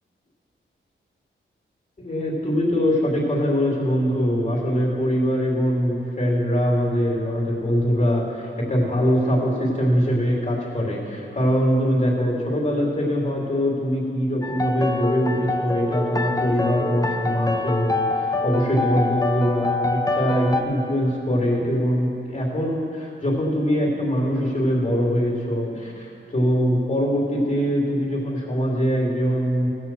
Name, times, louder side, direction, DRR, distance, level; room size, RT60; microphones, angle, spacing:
voice 1, 2.0-29.7, equal, 35° left, -3 dB, 3.0 m, -22 dB
sound 1, 14.4-20.6, left 2 dB, 15° left, 0.7 m, -25 dB
15.5 x 6.3 x 7.4 m, 3.0 s
wide cardioid pair, 100°, 21 cm